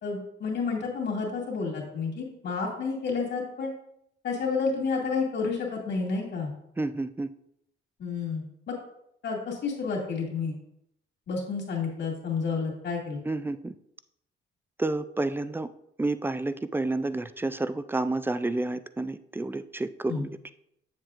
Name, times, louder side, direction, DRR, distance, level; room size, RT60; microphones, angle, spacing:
voice 1, 0.0-3.7 4.2-6.5 8.0-8.7 9.2-10.5 11.3-13.2 20.1-20.2, left 4 dB, 60° left, -1 dB, 2.2 m, -30 dB
voice 2, 6.8-7.3 13.3-13.7 14.8-15.7 16.0-20.3, right 2 dB, 10° right, 13 dB, 0.3 m, -30 dB
7.4 x 7.2 x 2.5 m, 0.77 s
cardioid pair, 90°, 20 cm